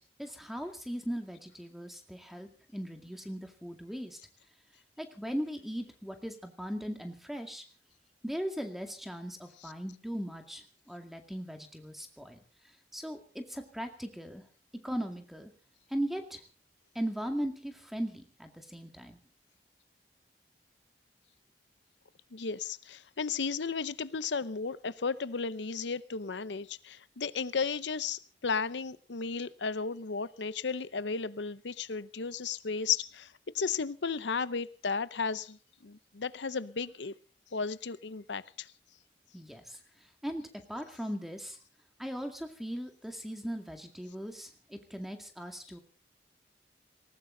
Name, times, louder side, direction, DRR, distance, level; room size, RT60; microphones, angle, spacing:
voice 1, 0.2-4.2 5.0-7.6 8.2-12.4 12.9-14.4 14.8-15.5 15.9-16.4 16.9-19.2 39.3-39.8 40.2-41.6 42.0-45.8, equal, ahead, 5 dB, 2.1 m, -38 dB
voice 2, 22.3-37.1 37.5-38.7, left 5 dB, 90° left, 16 dB, 0.7 m, -34 dB
19.0 x 19.0 x 3.9 m, 0.39 s
head